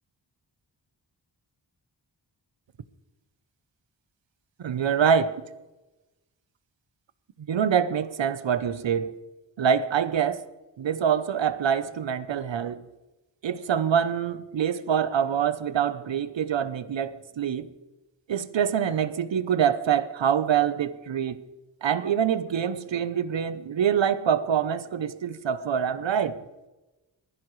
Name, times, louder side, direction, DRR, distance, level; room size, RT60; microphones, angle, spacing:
voice 1, 4.6-5.3 7.5-9.1 9.6-10.4 10.8-12.8 13.4-17.7 18.3-21.4 21.8-26.4, right 8 dB, 75° right, 0.8 m, -25 dB
20.0 x 14.5 x 3.2 m
wide cardioid pair, 115°, 45 cm